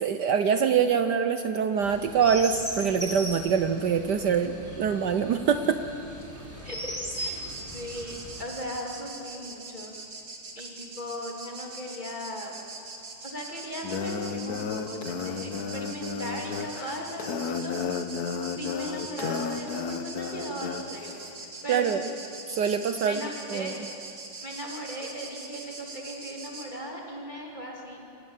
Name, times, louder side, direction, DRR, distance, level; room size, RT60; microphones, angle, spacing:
voice 1, 0.0-5.8 21.7-22.0 22.5-23.2 23.5-23.7, right 7 dB, 65° right, 9 dB, 1.1 m, -24 dB
Chirp tweet, 1.8-8.4, equal, 5° right, 3.9 m, -38 dB
voice 2, 6.6-7.4 7.7-9.9 10.5-12.6 13.2-17.9 18.5-22.0 23.0-23.7 24.4-28.0, equal, 20° left, -1 dB, 3.0 m, -38 dB
sound 1, 7.4-26.7, right 3 dB, 50° right, 2.6 m, -43 dB
sound 2, 13.8-20.8, left 6 dB, 55° left, 1.3 m, -33 dB
26.5 x 17.5 x 7.4 m, 2.7 s
omnidirectional pair, 2.4 m